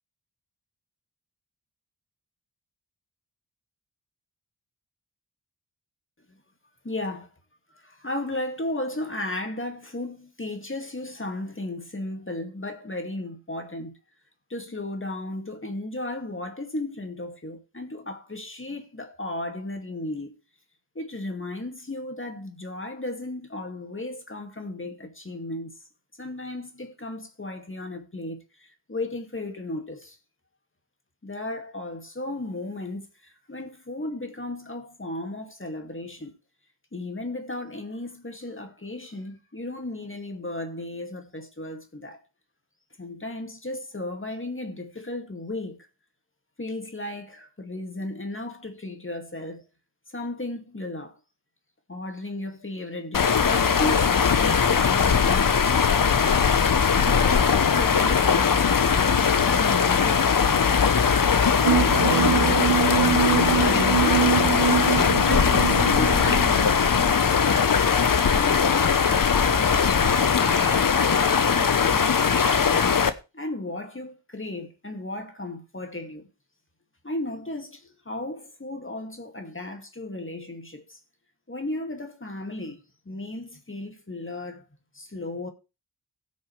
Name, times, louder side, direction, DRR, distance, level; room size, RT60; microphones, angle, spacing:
voice 1, 6.8-7.3 7.7-14.0 14.5-20.4 21.0-25.8 26.2-30.2 31.2-36.3 36.9-42.2 43.0-45.9 46.6-49.7 50.1-51.1 51.9-55.6 57.0-60.6 61.6-62.7 63.5-64.8 65.3-67.7 68.3-73.0 73.3-76.3 77.0-81.0 81.5-84.7 84.9-85.5, left 2 dB, 30° left, 2.2 m, -35 dB
sound 1, 53.1-73.1, left 6 dB, 50° left, 0.9 m, -20 dB
sound 2, 61.6-67.0, right 11 dB, 70° right, 0.6 m, -25 dB
17.0 x 6.4 x 3.3 m
cardioid pair, 55°, 43 cm